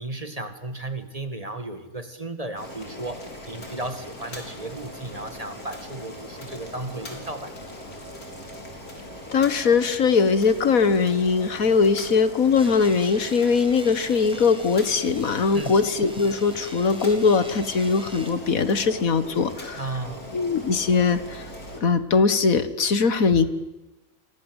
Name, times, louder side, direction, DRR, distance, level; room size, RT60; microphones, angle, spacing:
voice 1, 0.0-7.7 15.5-15.8 19.7-20.3, right 2 dB, 25° right, 9 dB, 2.0 m, -34 dB
Boiling, 2.6-21.8, left 1 dB, 90° left, 5.2 m, -40 dB
voice 2, 9.3-19.8 20.3-21.4 21.8-23.5, left 5 dB, 70° left, 12 dB, 1.8 m, -21 dB
sound 1, 12.5-18.3, equal, 5° right, 4.0 m, -43 dB
29.5 x 23.5 x 8.1 m, 1.0 s
omnidirectional pair, 1.5 m